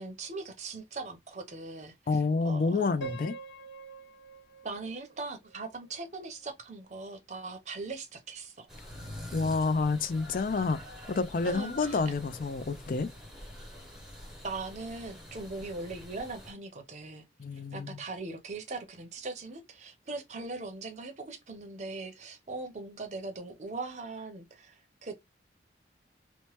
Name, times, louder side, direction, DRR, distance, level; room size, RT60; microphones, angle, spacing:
voice 1, 0.0-3.1 4.6-8.7 11.4-12.0 14.4-17.2 17.5-25.1, right 3 dB, 40° right, 0.6 m, -40 dB
voice 2, 2.1-3.4 9.3-10.8 11.1-13.1 17.4-18.0, left 4 dB, 45° left, 0.4 m, -29 dB
Piano, 3.0-6.0, right 4 dB, 75° left, 0.8 m, -45 dB
sound 1, 8.7-16.5, left 1 dB, ahead, 0.7 m, -46 dB
3.0 x 2.1 x 3.0 m
head